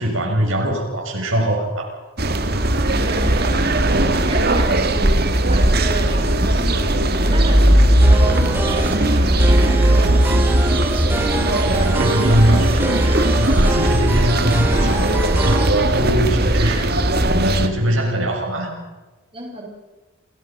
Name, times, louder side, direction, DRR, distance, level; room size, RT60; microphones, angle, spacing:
voice 1, 0.0-1.9 11.6-18.8, right 1 dB, 70° right, 0 dB, 6.7 m, -21 dB
sound 1, 2.2-17.7, right 1 dB, 45° right, 1.9 m, -17 dB
voice 2, 2.8-10.5 19.3-19.7, right 1 dB, 25° right, -2 dB, 5.6 m, -30 dB
sound 2, 8.0-15.7, right 1 dB, 10° right, 2.4 m, -26 dB
29.0 x 19.5 x 6.0 m, 1.2 s
head